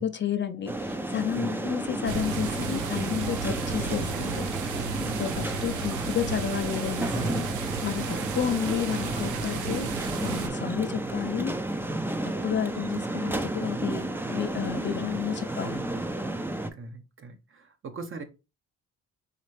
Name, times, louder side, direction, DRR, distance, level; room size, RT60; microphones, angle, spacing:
voice 1, 0.0-4.5 5.2-7.5 7.8-9.9 10.2-11.7 12.2-16.0, left 8 dB, 40° left, 0.5 m, -31 dB
sound 1, 0.7-16.7, right 1 dB, 5° right, 0.5 m, -32 dB
sound 2, 2.1-10.5, right 6 dB, 85° right, 0.8 m, -34 dB
voice 2, 4.9-5.5 8.0-8.3 16.8-18.2, right 3 dB, 45° right, 0.9 m, -39 dB
4.1 x 3.2 x 3.1 m
cardioid pair, 90°, 30 cm